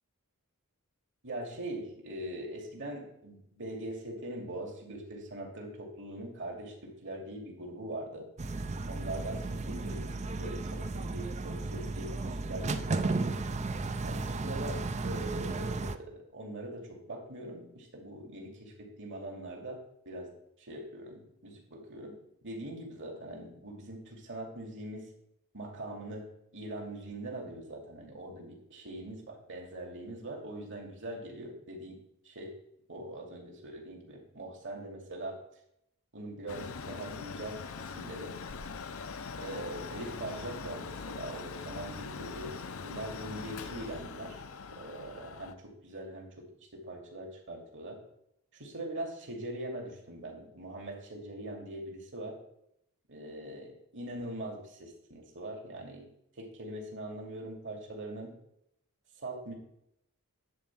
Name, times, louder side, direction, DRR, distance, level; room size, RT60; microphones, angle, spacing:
voice 1, 1.2-8.3 8.9-13.4 14.0-25.1 25.5-32.6 32.9-35.4 36.1-38.4 39.4-44.4 44.7-48.0 48.5-52.4 53.1-56.1 56.4-58.3 59.2-59.5, right 1 dB, 55° right, 0 dB, 2.6 m, -42 dB
sound 1, 8.4-16.0, right 3 dB, 30° right, 0.5 m, -34 dB
Mechanical fan, 36.5-45.6, left 5 dB, 65° left, 0.7 m, -42 dB
10.5 x 4.3 x 7.4 m, 0.77 s
head